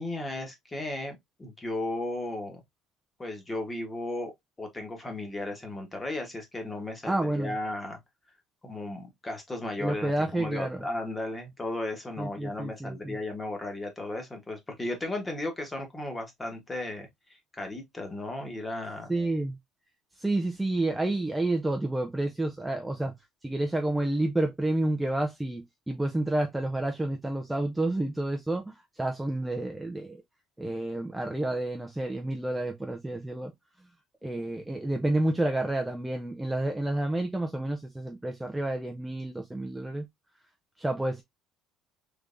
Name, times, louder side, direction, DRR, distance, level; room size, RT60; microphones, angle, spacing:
voice 1, 0.0-2.6 3.2-8.0 8.6-19.1, left 2 dB, 15° left, 1.1 m, -35 dB
voice 2, 7.1-7.6 9.8-10.8 12.2-13.2 19.1-19.6 20.2-23.1 23.4-30.2 30.6-33.5 34.2-40.1 40.8-41.2, right 1 dB, 5° right, 0.4 m, -29 dB
3.4 x 3.3 x 2.4 m
cardioid pair, 155°, 0 cm